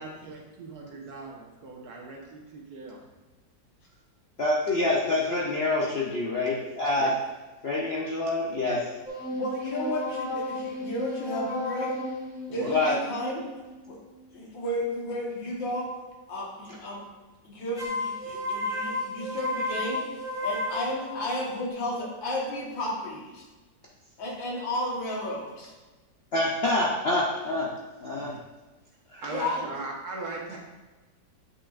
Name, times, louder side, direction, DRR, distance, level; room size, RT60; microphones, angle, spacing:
voice 1, 0.0-3.0 6.9-7.1 8.6-8.8 12.5-12.7 28.1-28.4 29.2-30.6, right 3 dB, 60° right, -1 dB, 1.5 m, -39 dB
voice 2, 4.4-7.1 7.6-8.8 12.7-13.0 26.3-27.7 28.0-28.3 29.1-29.3, left 2 dB, 55° left, -4 dB, 0.7 m, -26 dB
sound 1, 9.1-14.4 17.8-21.7, left 1 dB, ahead, 0.9 m, -34 dB
voice 3, 9.3-11.9 12.5-13.4 13.8-14.0 14.3-15.9 16.3-17.1 17.4-23.5 24.2-25.7 29.3-29.7, left 1 dB, 85° left, -3 dB, 2.1 m, -33 dB
8.1 x 6.1 x 2.5 m, 1.2 s
omnidirectional pair, 2.0 m